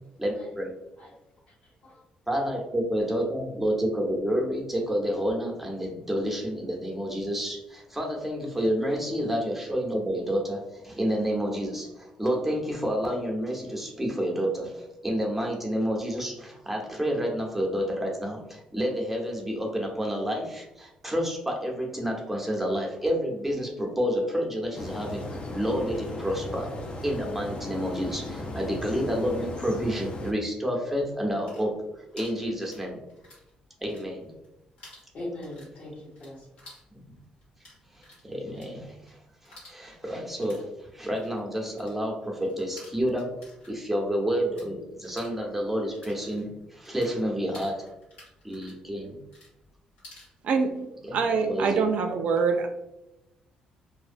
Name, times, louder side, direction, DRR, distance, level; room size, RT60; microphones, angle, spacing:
voice 1, 0.2-0.7 2.3-26.8 27.0-31.8 32.1-33.0 33.8-34.3 36.9-37.2 37.9-39.2 39.4-43.3 43.7-47.9 48.4-49.2 51.5-51.9, equal, 5° right, -1 dB, 0.7 m, -29 dB
voice 2, 1.5-2.0 35.1-36.5, left 1 dB, 65° left, -5 dB, 1.2 m, -41 dB
sound 1, 24.7-30.3, left 1 dB, 45° left, 0.4 m, -36 dB
sound 2, 31.4-33.5 33.8-34.5 34.8-44.7 45.0-50.3, left 1 dB, 85° left, 1.2 m, -52 dB
voice 3, 51.1-52.7, right 5 dB, 65° right, 5 dB, 0.3 m, -24 dB
2.5 x 2.0 x 2.5 m, 0.92 s
supercardioid pair, 70°, 3 cm